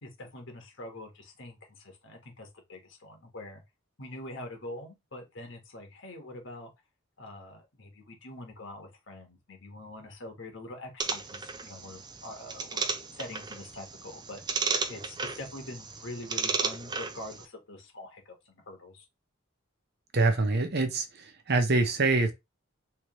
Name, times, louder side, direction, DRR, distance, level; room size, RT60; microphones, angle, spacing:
voice 1, 0.0-3.6 4.0-6.7 7.2-12.9 13.1-14.4 14.9-19.0, left 1 dB, 65° left, 1.4 m, -44 dB
sound 1, 11.0-17.4, right 4 dB, 20° right, 0.4 m, -34 dB
voice 2, 20.1-22.3, right 3 dB, 55° right, 0.9 m, -25 dB
3.4 x 3.2 x 3.1 m
head